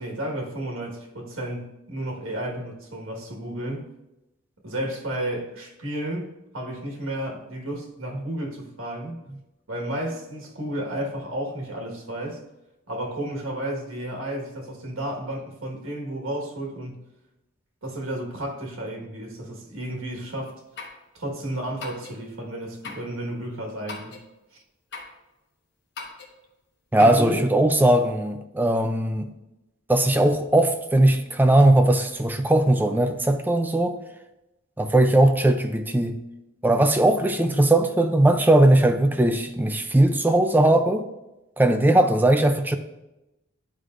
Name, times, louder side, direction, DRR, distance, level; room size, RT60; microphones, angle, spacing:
voice 1, 0.0-3.9 4.6-9.2 9.7-12.4 12.9-17.0 17.8-20.6 21.1-24.2 24.5-24.6 27.0-27.5, right 1 dB, 80° right, 1.5 m, -32 dB
sound 1, 20.8-21.0 21.8-22.2 22.8-23.1 23.9-24.3 24.9-25.2 26.0-26.3 27.0-27.3, left 4 dB, 55° left, 1.2 m, -38 dB
voice 2, 26.9-29.3 29.9-34.0 34.8-36.2 36.6-41.1 41.6-42.8, right 1 dB, 10° right, 0.4 m, -19 dB
11.0 x 4.9 x 2.5 m
head